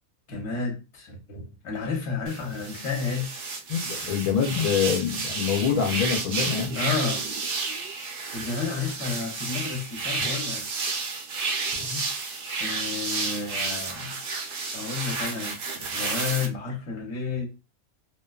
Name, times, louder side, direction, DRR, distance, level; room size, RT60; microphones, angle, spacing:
voice 1, 0.3-3.3 6.7-7.2 8.3-10.6 12.6-14.2 14.7-17.5, left 5 dB, 55° left, 1.1 m, -31 dB
sound 1, 2.3-16.5, right 4 dB, 70° right, 0.5 m, -31 dB
voice 2, 3.7-6.8 10.2-10.3 11.9-12.0, left 7 dB, 80° left, 1.1 m, -25 dB
2.6 x 2.2 x 2.3 m
omnidirectional pair, 1.5 m